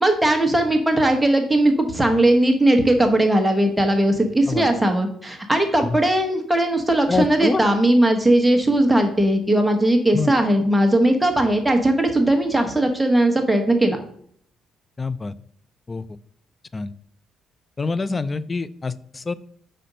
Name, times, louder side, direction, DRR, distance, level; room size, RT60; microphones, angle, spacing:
voice 1, 0.0-14.0, right 1 dB, 5° right, 3 dB, 1.0 m, -18 dB
voice 2, 7.1-7.6 10.1-10.3 15.0-15.3 15.9-16.0 16.7-16.9 17.8-19.3, left 4 dB, 25° left, 17 dB, 0.3 m, -25 dB
5.1 x 4.2 x 5.1 m, 0.63 s
cardioid pair, 110°, 0 cm